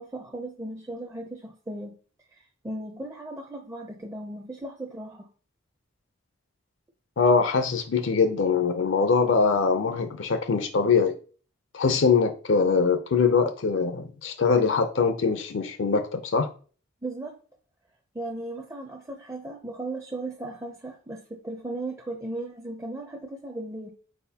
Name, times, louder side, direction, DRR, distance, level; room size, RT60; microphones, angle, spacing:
voice 1, 0.0-2.0 2.3-5.3 17.0-17.4 18.1-23.9, right 2 dB, 15° right, 0.5 m, -36 dB
voice 2, 7.2-11.1 11.7-16.5, left 5 dB, 65° left, 0.5 m, -23 dB
4.2 x 4.1 x 2.7 m
head